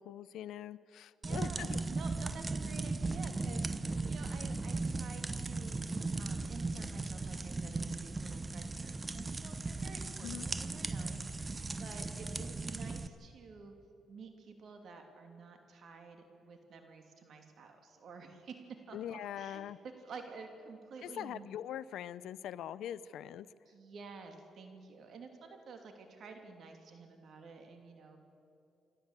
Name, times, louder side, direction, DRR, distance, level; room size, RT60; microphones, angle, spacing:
voice 1, 0.0-1.8 10.2-10.5 18.9-19.8 21.0-23.5, left 11 dB, 80° left, 18 dB, 0.6 m, -42 dB
sound 1, 1.2-13.1, right 3 dB, 25° right, 0.9 m, -37 dB
voice 2, 1.2-13.7 14.1-19.6 20.0-21.5 23.7-28.2, right 4 dB, 60° right, 5 dB, 2.8 m, -51 dB
28.0 x 12.0 x 8.2 m, 2.6 s
cardioid pair, 90°, 0 cm